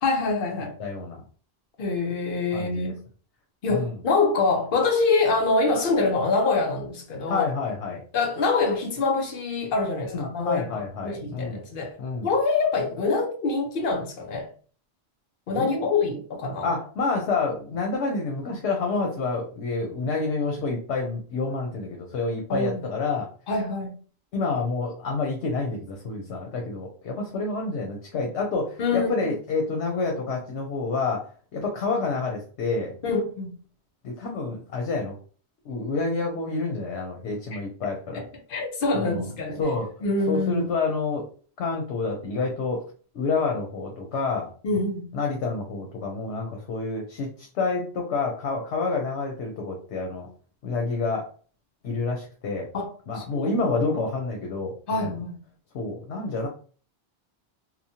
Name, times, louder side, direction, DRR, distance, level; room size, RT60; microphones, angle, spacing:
voice 1, 0.0-0.8 1.8-3.0 3.6-7.5 8.1-12.0 12.2-14.5 15.5-16.7 22.5-22.8 23.5-23.9 28.8-29.3 33.0-33.5 38.1-38.2 38.5-39.6 40.0-40.6 44.6-45.1 52.7-52.9 53.2-53.5 54.9-55.4, left 3 dB, 60° left, 0.8 m, -25 dB
voice 2, 0.8-1.2 2.5-2.9 3.7-3.9 7.3-8.0 10.1-11.6 12.0-12.3 15.6-15.9 16.6-23.3 24.3-32.9 34.0-35.1 35.6-38.2 38.9-39.3 39.6-39.9 40.3-41.2 41.6-42.8 43.1-44.5 45.1-50.3 50.6-51.3 51.8-52.7 53.1-55.2 55.7-56.5, left 3 dB, 90° left, 1.0 m, -28 dB
3.0 x 2.1 x 2.7 m
omnidirectional pair, 1.1 m